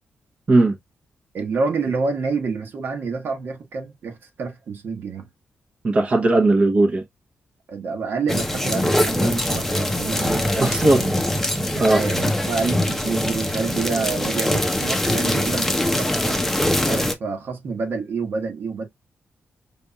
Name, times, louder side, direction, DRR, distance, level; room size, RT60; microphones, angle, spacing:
voice 1, 1.3-5.2 7.7-11.1 11.8-16.4 16.8-18.9, right 4 dB, 60° right, 1.3 m, -28 dB
voice 2, 5.8-7.0 10.6-11.0 11.8-12.0, right 2 dB, 35° right, 0.9 m, -17 dB
sound 1, 8.3-17.1, left 1 dB, 5° left, 0.7 m, -23 dB
5.5 x 3.4 x 2.3 m
wide cardioid pair, 135°, 4 cm